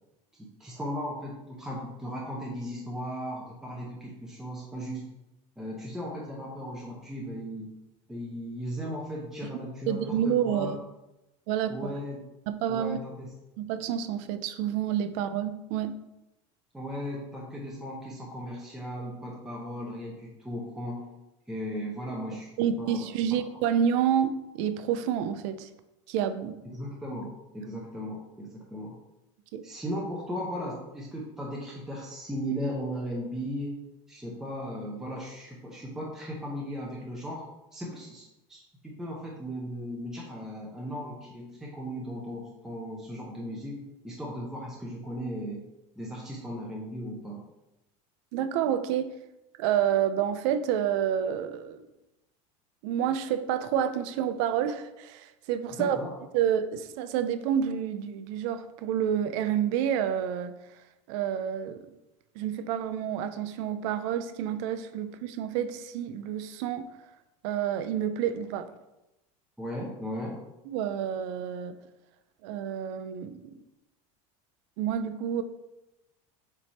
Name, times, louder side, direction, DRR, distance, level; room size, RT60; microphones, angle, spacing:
voice 1, 0.3-5.1 5.6-7.7 8.1-10.8 11.7-12.2 12.7-13.3 16.7-21.1 21.5-22.5 22.8-23.4 26.6-28.9 29.6-33.8 34.1-37.4 37.7-45.6 46.0-47.4 55.8-56.1 69.6-70.4, equal, 5° right, -4 dB, 0.8 m, -37 dB
voice 2, 9.9-10.8 11.5-11.9 12.5-13.0 13.6-15.9 22.6-25.7 26.1-26.6 29.5-29.6 48.3-49.1 49.6-51.8 52.8-56.0 56.3-60.5 61.1-61.9 62.4-66.9 67.4-68.7 70.7-71.8 72.4-73.6 74.8-75.4, right 9 dB, 65° right, 11 dB, 0.6 m, -29 dB
7.3 x 3.4 x 4.2 m, 0.95 s
cardioid pair, 165°, 17 cm